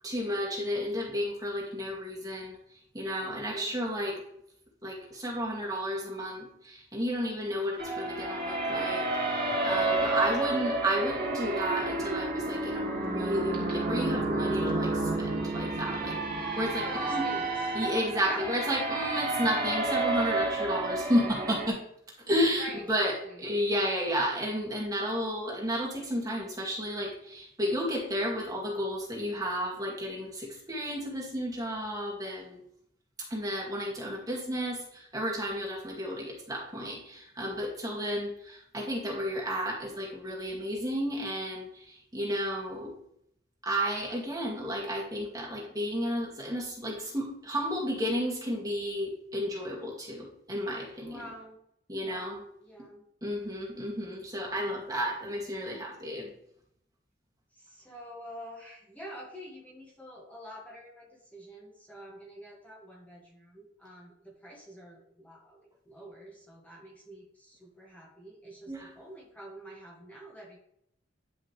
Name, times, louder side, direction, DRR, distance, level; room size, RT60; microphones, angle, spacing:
voice 1, 0.0-2.6 2.9-4.2 4.8-17.2 17.7-21.8 22.3-23.1 23.4-32.6 33.3-42.9 43.6-51.3 51.9-52.4 53.2-56.3 68.7-68.9, equal, 20° right, -3 dB, 2.2 m, -32 dB
voice 2, 3.2-3.8 10.0-10.8 16.8-17.5 18.2-18.9 22.6-23.5 51.1-51.6 52.0-53.0 57.5-65.6 65.9-70.6, equal, 10° left, -4 dB, 1.9 m, -46 dB
sound 1, 7.8-21.7, right 2 dB, 55° right, 2.6 m, -30 dB
11.0 x 5.7 x 3.3 m, 0.72 s
head